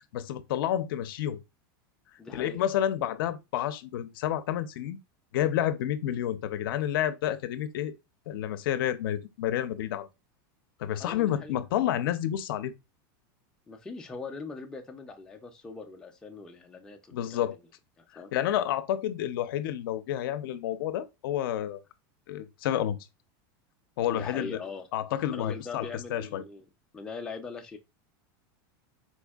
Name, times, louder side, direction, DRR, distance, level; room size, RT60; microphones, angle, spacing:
voice 1, 0.1-1.4 2.3-5.0 5.3-7.9 8.3-10.1 10.8-12.7 17.1-17.6 18.3-21.8 22.3-23.0 24.0-24.6 24.9-26.4, left 11 dB, 70° left, 0.5 m, -30 dB
voice 2, 2.2-2.6 11.0-11.5 13.7-17.6 18.0-18.3 24.1-24.9 25.3-26.6 26.9-27.8, left 4 dB, 5° left, 0.3 m, -41 dB
4.2 x 2.5 x 2.3 m
supercardioid pair, 160°, 12 cm